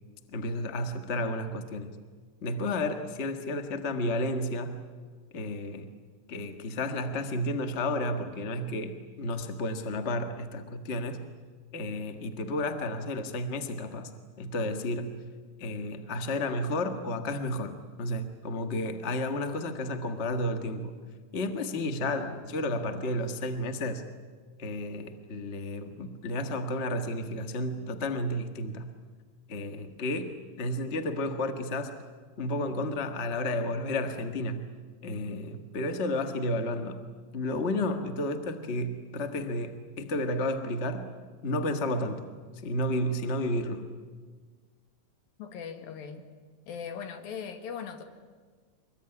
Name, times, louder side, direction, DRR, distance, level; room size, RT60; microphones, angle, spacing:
voice 1, 0.3-1.9 2.4-4.8 5.3-5.9 6.3-11.2 11.7-14.1 14.4-15.2 15.6-20.9 21.3-24.1 24.6-28.9 29.5-32.0 32.4-34.7 35.0-37.0 37.3-41.2 41.4-42.3 42.6-43.9, left 1 dB, 35° left, 7 dB, 1.1 m, -32 dB
voice 2, 45.4-46.2 46.7-48.0, left 7 dB, 90° left, 6 dB, 3.7 m, -39 dB
24.5 x 21.5 x 9.9 m, 1.5 s
omnidirectional pair, 4.0 m